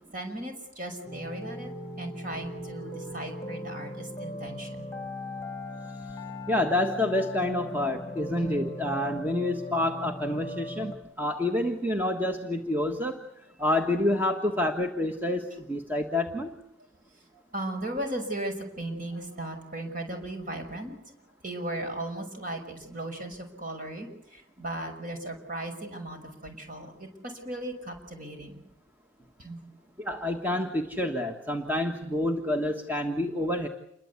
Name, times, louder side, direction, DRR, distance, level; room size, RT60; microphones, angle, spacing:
voice 1, 0.1-1.7 2.0-5.1 8.4-8.6 17.5-21.0 21.4-28.6 29.4-29.6, right 1 dB, 40° right, 5 dB, 5.7 m, -37 dB
sound 1, 1.1-11.0, left 1 dB, 15° left, 1.9 m, -39 dB
voice 2, 6.5-13.2 13.6-16.5 30.0-33.7, left 1 dB, 10° right, 3 dB, 1.5 m, -28 dB
28.0 x 22.5 x 8.4 m, 0.77 s
head